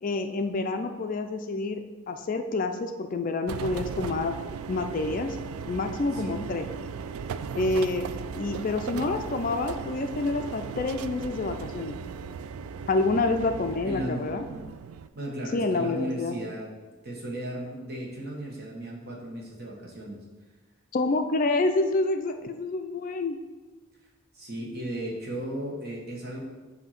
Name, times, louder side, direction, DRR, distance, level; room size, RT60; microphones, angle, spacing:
voice 1, 0.0-4.3 4.7-5.4 5.7-6.7 7.5-8.1 8.4-12.0 12.9-14.4 15.5-16.4 20.9-23.4, left 3 dB, 40° left, 6 dB, 0.4 m, -28 dB
sound 1, 3.5-15.1, right 6 dB, 85° right, 0.3 m, -37 dB
voice 2, 6.1-6.5 13.8-14.2 14.5-14.6 15.1-16.7 17.0-20.2 24.3-26.4, right 1 dB, 50° right, -3 dB, 1.3 m, -35 dB
7.6 x 2.8 x 5.7 m, 1.3 s
head